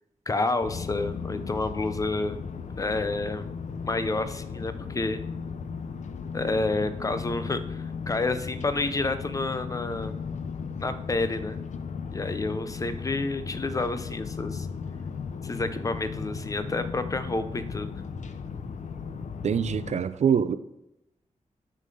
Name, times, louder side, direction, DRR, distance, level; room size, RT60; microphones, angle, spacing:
voice 1, 0.3-2.4 2.8-3.4 3.9-5.2 6.3-10.1 10.8-11.6 12.1-14.7 15.4-17.9, left 2 dB, 25° left, 0.4 m, -29 dB
sound 1, 0.6-20.0, left 5 dB, 70° left, 0.6 m, -36 dB
voice 2, 19.4-20.6, right 7 dB, 65° right, 0.4 m, -24 dB
9.5 x 3.8 x 5.3 m
wide cardioid pair, 180°, 13 cm